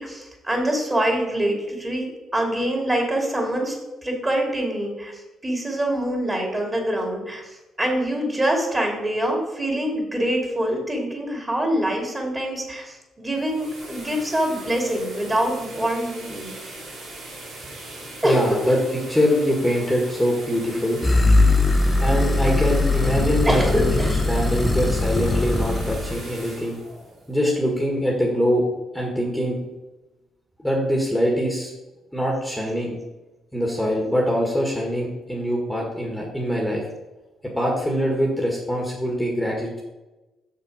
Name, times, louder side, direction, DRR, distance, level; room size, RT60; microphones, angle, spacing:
voice 1, 0.0-2.1 2.3-3.7 4.0-16.5 18.2-18.7 23.5-24.1 24.6-24.7, right 1 dB, 20° right, 1 dB, 2.7 m, -25 dB
sound 1, 13.2-28.1, right 2 dB, 80° right, 3.0 m, -40 dB
voice 2, 18.2-18.8 19.1-21.0 22.0-23.9 24.3-26.8 27.3-28.7 28.9-29.7 30.6-31.7 32.1-32.9 33.5-36.8 37.6-39.8, equal, 5° left, -2 dB, 1.7 m, -23 dB
sound 2, 21.0-26.2, left 2 dB, 20° left, 0.8 m, -20 dB
6.7 x 6.6 x 4.9 m, 1.1 s
cardioid pair, 90°, 0 cm